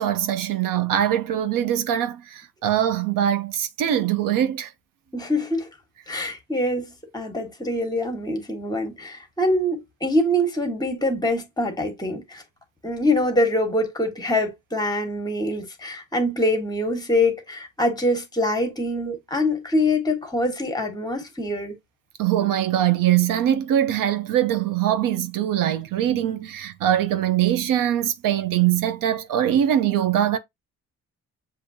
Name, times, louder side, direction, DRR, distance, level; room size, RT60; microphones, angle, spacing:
voice 1, 0.0-4.7 19.0-19.2 22.2-30.4, right 11 dB, 80° right, 0.6 m, -22 dB
voice 2, 5.1-5.7 6.1-12.4 12.8-21.8, left 1 dB, 10° left, 1.2 m, -24 dB
6.9 x 2.7 x 2.6 m
cardioid pair, 140°, 33 cm